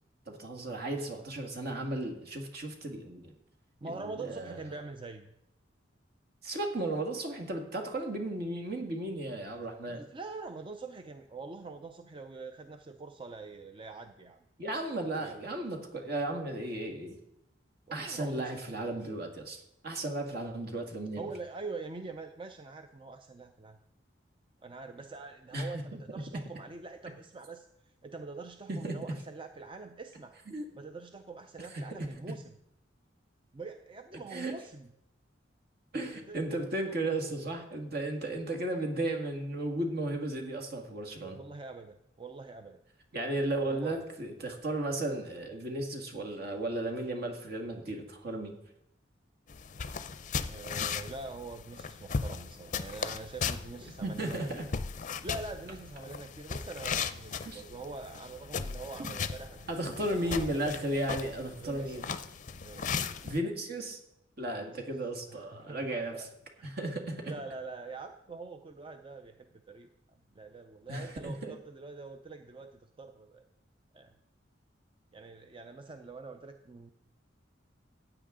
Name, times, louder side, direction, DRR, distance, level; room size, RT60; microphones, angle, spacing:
voice 1, 0.3-3.3 3.8-4.8 6.4-10.0 14.6-17.2 17.9-21.3 25.5-26.0 26.3-26.4 28.7-29.0 30.5-30.6 31.6-31.8 34.3-34.6 35.9-41.4 43.1-48.6 54.0-54.6 57.4-57.6 59.0-59.2 59.7-62.1 63.2-64.0 64.4-66.3 66.6-67.3 70.9-71.6, right 1 dB, 55° right, 3 dB, 1.9 m, -35 dB
voice 2, 3.8-5.3 9.9-14.4 15.1-15.3 17.9-18.8 21.2-23.8 24.6-30.4 30.7-32.4 33.5-34.9 36.1-36.6 36.9-37.1 41.3-42.8 43.7-43.9 50.5-54.7 55.2-60.7 61.6-63.3 64.5-64.8 65.3-66.3 66.6-66.8 67.2-69.9 70.3-73.4 73.9-74.2 75.1-76.9, right 3 dB, 30° right, 7 dB, 0.5 m, -44 dB
sound 1, 49.5-63.4, left 5 dB, 45° left, 0.5 m, -37 dB
15.0 x 8.9 x 3.8 m, 0.82 s
head